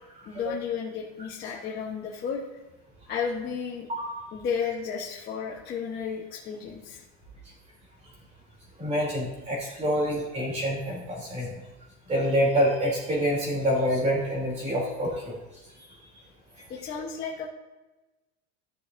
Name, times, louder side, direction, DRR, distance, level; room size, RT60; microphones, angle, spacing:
voice 1, 0.2-2.4 3.1-3.9 4.3-7.0 16.7-17.5, left 6 dB, 30° left, -5 dB, 1.2 m, -33 dB
voice 2, 8.8-11.5 12.1-15.4, equal, 20° right, -3 dB, 3.2 m, -26 dB
14.5 x 6.6 x 2.7 m, 1.1 s
supercardioid pair, 155°, 34 cm